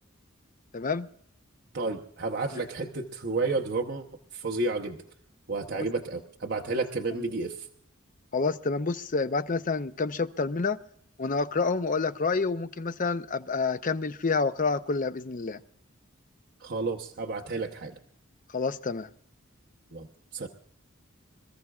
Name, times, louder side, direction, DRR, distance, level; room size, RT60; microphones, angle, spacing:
voice 1, 0.7-1.1 5.7-5.8 8.3-10.8 11.2-15.6 18.5-19.1, left 4 dB, 40° left, 11 dB, 0.6 m, -28 dB
voice 2, 1.7-4.1 4.3-5.0 5.5-7.7 16.6-18.0 19.9-20.1 20.3-20.5, right 3 dB, 55° right, 2 dB, 1.0 m, -31 dB
26.5 x 14.0 x 2.4 m, 0.66 s
head